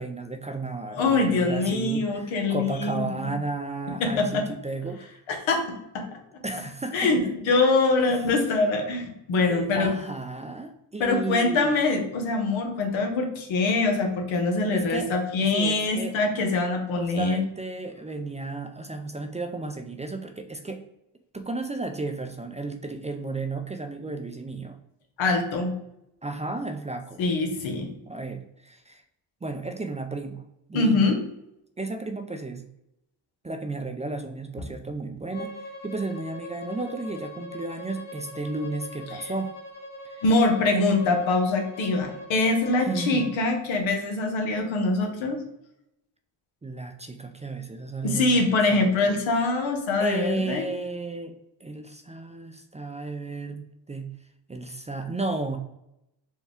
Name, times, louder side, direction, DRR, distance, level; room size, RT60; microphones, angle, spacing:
voice 1, 0.0-5.2 6.4-7.3 8.1-8.2 9.5-11.8 14.7-15.1 15.5-16.2 17.0-20.8 21.3-24.8 26.2-27.2 28.1-29.0 29.4-30.4 30.7-31.1 31.8-32.7 33.4-39.5 40.0-40.2 40.7-40.9 42.8-43.3 46.6-49.5 50.0-51.3 51.6-54.1 54.5-55.6, right 3 dB, 15° right, 6 dB, 0.4 m, -33 dB
voice 2, 0.9-3.3 4.0-4.4 5.3-6.0 6.9-9.9 11.0-17.4 25.2-25.7 27.2-27.9 30.7-31.2 40.2-45.4 48.0-50.6, left 3 dB, 85° left, 3 dB, 0.9 m, -24 dB
Bowed string instrument, 35.3-43.3, left 1 dB, 70° left, 1.2 m, -42 dB
4.4 x 2.3 x 3.5 m, 0.83 s
cardioid pair, 65°, 45 cm